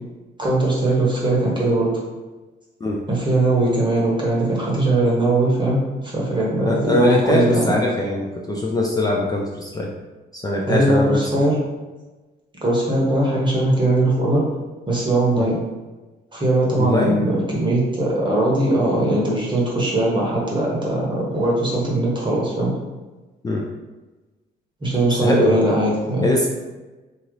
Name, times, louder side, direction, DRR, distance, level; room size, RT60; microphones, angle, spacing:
voice 1, 0.4-1.9 3.1-7.8 10.7-11.6 12.6-14.4 14.9-15.6 16.3-22.7 24.8-26.3, right 2 dB, 25° right, -5 dB, 0.9 m, -20 dB
voice 2, 6.6-9.9 10.3-11.3 15.4-15.5 16.8-17.2 23.4-23.7 25.1-25.8 26.2-26.5, left 2 dB, 20° left, -2 dB, 0.4 m, -21 dB
2.8 x 2.4 x 3.1 m, 1.2 s
cardioid pair, 90°, 20 cm